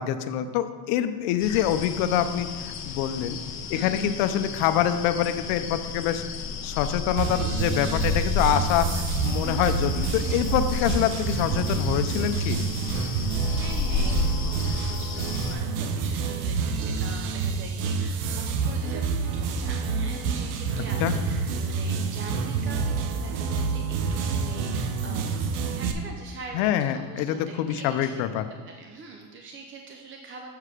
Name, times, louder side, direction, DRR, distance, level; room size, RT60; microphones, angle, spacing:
voice 1, 0.0-3.4 3.7-6.2 6.6-12.6 21.0-21.1 26.5-28.4, left 10 dB, 80° left, 9 dB, 0.7 m, -25 dB
sound 1, 1.4-15.5, left 5 dB, 35° left, 0.7 m, -32 dB
voice 2, 3.7-4.1 13.4-28.2 28.5-30.5, right 3 dB, 25° right, 2 dB, 0.6 m, -43 dB
sound 2, 7.2-25.9, right 5 dB, 85° right, 0.9 m, -28 dB
7.5 x 4.8 x 4.9 m, 1.5 s
cardioid pair, 125°, 47 cm